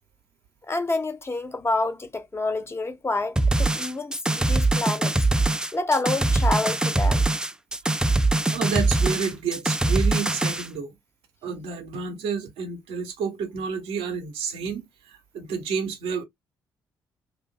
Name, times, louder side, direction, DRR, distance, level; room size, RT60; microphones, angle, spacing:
voice 1, 0.7-5.1 5.7-7.2, left 2 dB, 25° left, 0.6 m, -28 dB
sound 1, 3.4-10.7, right 2 dB, 5° right, 0.3 m, -22 dB
voice 2, 8.5-10.9 11.4-16.2, right 6 dB, 65° right, 0.7 m, -30 dB
2.6 x 2.3 x 2.2 m
figure-of-eight pair, 40°, 10 cm